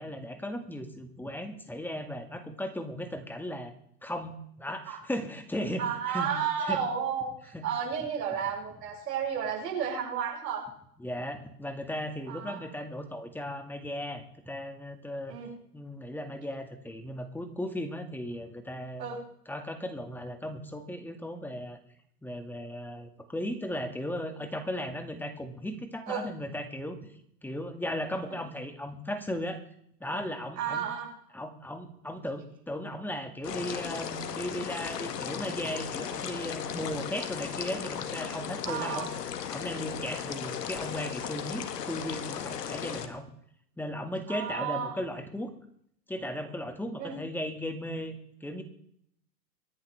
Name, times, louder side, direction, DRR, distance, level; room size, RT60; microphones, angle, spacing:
voice 1, 0.0-3.7 4.0-6.3 6.6-6.8 7.5-7.6 11.0-15.4 15.7-19.1 19.5-21.8 22.2-27.0 27.4-29.6 30.0-30.8 31.3-39.1 39.5-43.3 43.8-45.5 46.1-48.6, equal, 5° left, 7 dB, 2.0 m, -36 dB
voice 2, 5.8-10.6 12.3-12.6 15.3-15.5 19.0-19.2 26.1-26.2 30.6-31.1 38.6-39.1 44.3-44.9 47.0-47.1, right 7 dB, 75° right, -3 dB, 6.8 m, -32 dB
sound 1, 33.4-43.1, left 8 dB, 75° left, 1.9 m, -36 dB
25.5 x 10.5 x 3.5 m, 0.70 s
hypercardioid pair, 115°, 49 cm